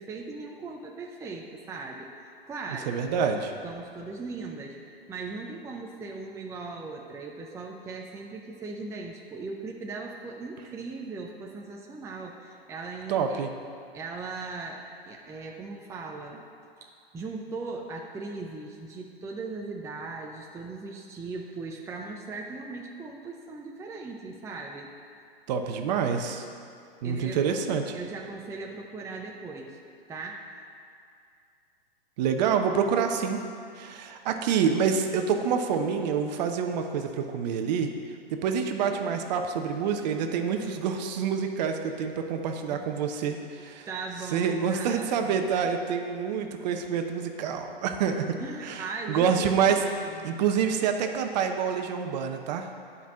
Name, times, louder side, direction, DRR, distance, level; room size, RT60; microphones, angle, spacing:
voice 1, 0.0-2.9 3.6-13.5 13.9-16.4 16.8-24.9 27.0-27.5 27.9-29.8 30.1-30.5 42.7-42.8 43.9-45.4 48.4-50.3, right 3 dB, 10° right, 0 dB, 0.6 m, -39 dB
voice 2, 2.9-3.5 13.1-13.5 25.5-26.5 27.0-28.0 32.2-33.4 33.8-37.9 38.3-43.9 44.3-49.8 50.2-52.7, right 7 dB, 45° right, 5 dB, 0.9 m, -27 dB
9.4 x 5.5 x 7.4 m, 2.4 s
hypercardioid pair, 115°, 30 cm